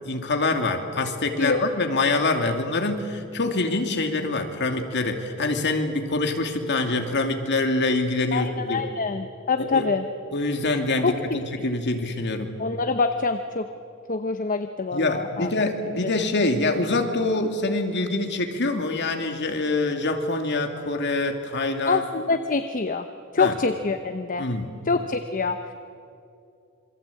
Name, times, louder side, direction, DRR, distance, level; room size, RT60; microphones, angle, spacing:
voice 1, 0.0-8.9 9.6-9.9 10.3-12.6 14.9-22.0 23.4-23.5 24.4-24.8, left 2 dB, 55° left, 5 dB, 2.6 m, -25 dB
voice 2, 8.3-10.1 11.0-11.4 12.6-13.7 14.1-15.5 21.9-23.1 23.3-24.4 24.9-25.7, left 4 dB, 40° left, 8 dB, 0.9 m, -25 dB
27.0 x 23.5 x 8.5 m, 2.6 s
head